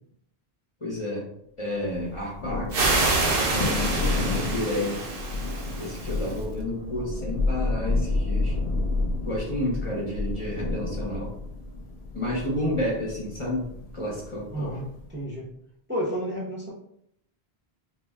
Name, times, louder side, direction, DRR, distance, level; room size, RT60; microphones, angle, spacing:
voice 1, 0.8-1.3 1.6-2.9 3.4-5.0 5.8-8.5 9.2-11.3 12.1-14.7, left 1 dB, 35° left, -5 dB, 0.7 m, -31 dB
Thunder, 1.9-15.1, left 2 dB, 70° left, 0.7 m, -30 dB
sound 1, 2.7-6.4, right 3 dB, 65° right, 0.8 m, -27 dB
voice 2, 14.5-15.5 15.9-16.7, equal, 15° right, -6 dB, 0.6 m, -31 dB
2.3 x 2.1 x 3.5 m, 0.72 s
omnidirectional pair, 1.1 m